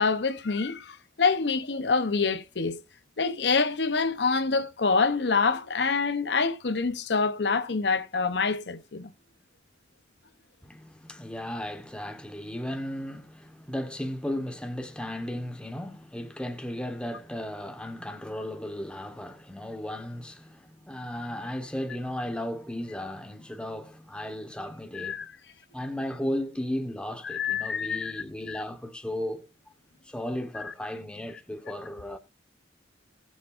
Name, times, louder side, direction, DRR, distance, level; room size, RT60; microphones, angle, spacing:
voice 1, 0.0-2.8 3.2-9.1 24.9-25.3 27.2-28.6, left 4 dB, 65° left, 0.8 m, -26 dB
voice 2, 10.6-25.2 25.7-29.5 30.0-32.2, left 1 dB, 5° left, 1.2 m, -35 dB
19.0 x 7.3 x 2.5 m
head